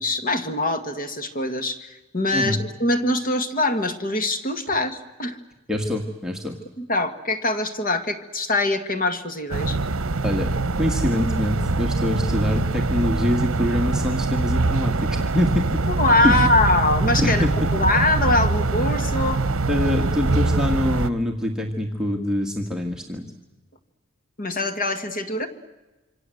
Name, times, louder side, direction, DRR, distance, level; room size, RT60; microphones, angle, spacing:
voice 1, 0.0-5.4 6.8-9.8 16.0-17.5 17.7-19.4 24.4-25.5, left 2 dB, 40° left, 9 dB, 1.8 m, -23 dB
voice 2, 5.7-6.6 10.2-10.5 10.8-15.8 16.2-16.4 17.2-17.5 19.7-23.3, left 1 dB, 5° right, 1 dB, 1.8 m, -24 dB
sound 1, 9.5-21.1, right 3 dB, 65° right, 0.9 m, -23 dB
27.0 x 25.5 x 7.9 m, 1.1 s
head